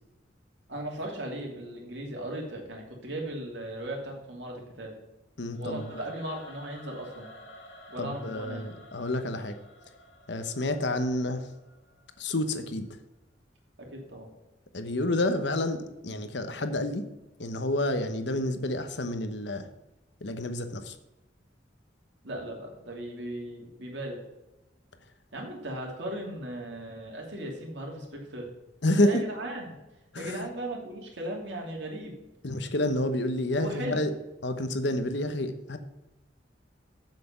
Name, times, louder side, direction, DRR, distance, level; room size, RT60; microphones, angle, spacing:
voice 1, 0.7-4.9 5.6-7.3 7.9-8.6 13.8-14.3 22.2-24.2 25.3-28.5 29.0-29.8 30.2-32.1 33.6-34.1, right 1 dB, 70° right, 0 dB, 2.7 m, -37 dB
voice 2, 5.4-6.0 8.0-9.6 10.3-11.5 12.2-12.9 14.7-17.0 17.4-19.7 20.2-21.0 28.8-29.2 30.1-30.5 32.4-34.1 34.4-35.8, left 1 dB, 70° left, 8 dB, 1.0 m, -29 dB
Singing / Musical instrument, 5.5-12.6, left 1 dB, 85° left, 1.9 m, -52 dB
7.6 x 7.6 x 5.8 m, 1.0 s
head